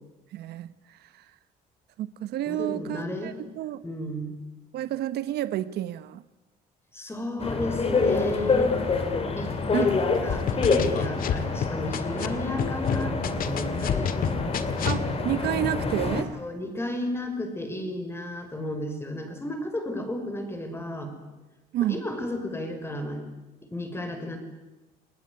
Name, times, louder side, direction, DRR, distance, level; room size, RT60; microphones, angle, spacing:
voice 1, 0.3-1.2 2.0-3.8 4.7-6.2 9.7-9.9 14.8-16.3 21.7-22.0, right 13 dB, 75° right, 14 dB, 1.2 m, -30 dB
voice 2, 2.5-3.4 3.8-4.4 6.9-8.7 9.4-14.1 16.4-21.1 21.9-23.2 23.6-24.4, left 1 dB, 15° left, 7 dB, 6.0 m, -33 dB
sound 1, 7.4-16.2, left 4 dB, 35° left, 4.3 m, -27 dB
sound 2, 10.3-12.3 12.6-15.0, left 8 dB, 60° left, 1.9 m, -28 dB
29.0 x 19.5 x 9.9 m, 1.1 s
cardioid pair, 110°, 17 cm